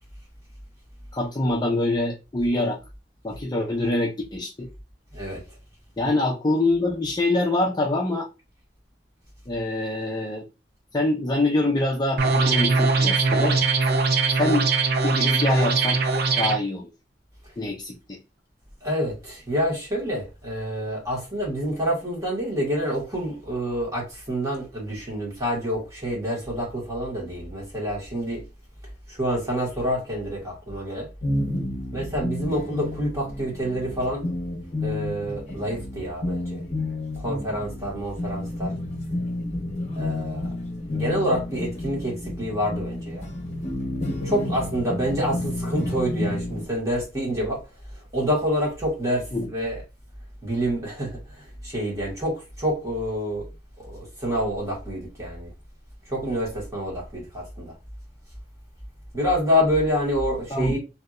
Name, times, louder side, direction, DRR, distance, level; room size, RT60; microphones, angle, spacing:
voice 1, 1.1-2.8 3.2-4.7 6.0-8.3 9.5-10.4 10.9-13.6 14.4-14.7 15.0-16.0 16.4-16.9 17.6-18.2 49.3-49.5 60.5-60.8, left 2 dB, 25° left, 0.6 m, -25 dB
sound 1, 12.2-16.6, right 4 dB, 60° right, 0.6 m, -21 dB
voice 2, 18.8-28.4 29.1-31.1 31.9-34.3 34.8-36.6 37.2-38.7 39.9-40.6 40.9-43.3 44.2-47.6 48.1-49.8 50.4-53.5 53.8-55.5 56.1-57.7 59.1-60.8, equal, 20° right, 1.8 m, -27 dB
sound 2, 31.2-46.7, left 1 dB, 40° left, 0.9 m, -30 dB
3.3 x 2.8 x 2.5 m
head